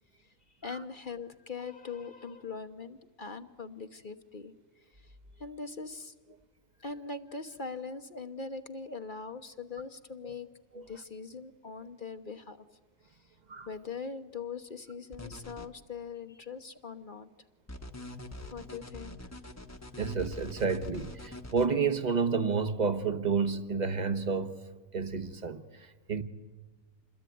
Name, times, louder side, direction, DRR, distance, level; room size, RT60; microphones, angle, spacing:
voice 1, 0.6-4.5 5.4-6.1 6.8-10.5 10.7-12.7 13.7-17.3 18.5-19.2, left 4 dB, 40° left, 1.1 m, -41 dB
sound 1, 15.1-15.7 17.7-21.7, left 1 dB, 15° left, 1.1 m, -44 dB
voice 2, 20.0-24.6 24.9-26.2, right 5 dB, 35° right, 1.3 m, -30 dB
27.0 x 21.5 x 9.4 m
omnidirectional pair, 1.4 m